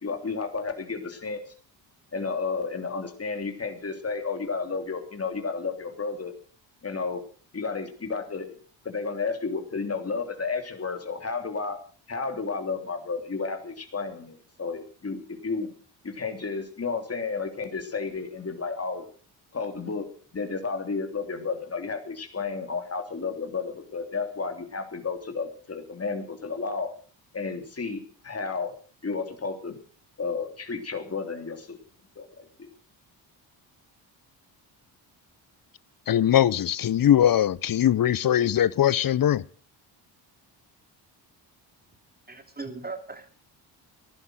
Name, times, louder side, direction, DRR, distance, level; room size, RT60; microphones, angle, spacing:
voice 1, 0.0-1.4 2.1-6.3 6.8-7.2 7.5-8.5 8.8-11.8 12.1-15.7 16.0-19.1 19.5-26.9 27.3-28.7 29.0-29.8 30.2-31.8 32.2-32.7, left 4 dB, 30° left, 3.1 m, -32 dB
voice 2, 36.1-39.4, left 11 dB, 50° left, 0.8 m, -21 dB
voice 3, 42.3-43.3, right 3 dB, 20° right, 3.1 m, -38 dB
15.5 x 11.0 x 6.3 m
supercardioid pair, 65°, 46 cm